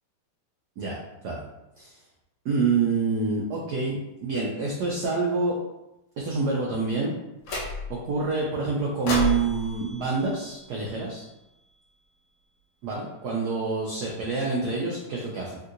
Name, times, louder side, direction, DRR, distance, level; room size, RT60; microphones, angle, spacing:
voice 1, 2.4-5.5 6.2-7.2 7.9-11.2 12.8-15.6, right 4 dB, 85° right, -3 dB, 0.9 m, -27 dB
sound 1, 7.4-8.1 9.1-11.3, left 3 dB, 85° left, 1.6 m, -32 dB
3.6 x 2.7 x 2.4 m, 0.92 s
omnidirectional pair, 2.3 m